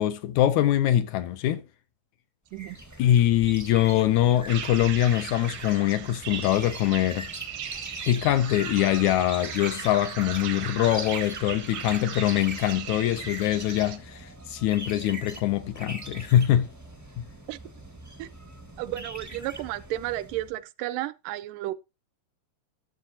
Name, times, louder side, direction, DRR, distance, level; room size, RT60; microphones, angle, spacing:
voice 1, 0.0-1.6 3.0-7.3 8.1-16.7, left 12 dB, 75° left, 1.9 m, -23 dB
sound 1, 2.5-20.5, right 1 dB, 30° right, 0.3 m, -42 dB
voice 2, 2.5-2.8 17.5-17.6 18.2-18.3 18.8-21.7, right 15 dB, 85° right, 2.2 m, -33 dB
sound 2, 4.5-14.0, right 9 dB, 65° right, 1.2 m, -38 dB
13.5 x 7.2 x 2.8 m
omnidirectional pair, 3.7 m